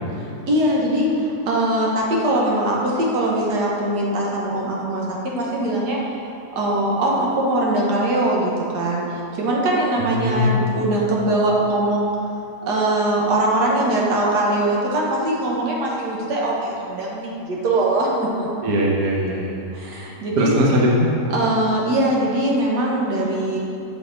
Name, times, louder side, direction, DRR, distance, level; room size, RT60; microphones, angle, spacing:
voice 1, 0.5-6.2 6.5-12.1 12.6-18.1 18.4-18.5 19.7-20.5 21.3-23.6, right 1 dB, 85° right, -3 dB, 1.7 m, -21 dB
voice 2, 10.0-10.5 18.6-19.6 20.4-21.1, equal, 65° right, -3 dB, 1.4 m, -20 dB
7.1 x 6.0 x 3.9 m, 2.7 s
omnidirectional pair, 1.7 m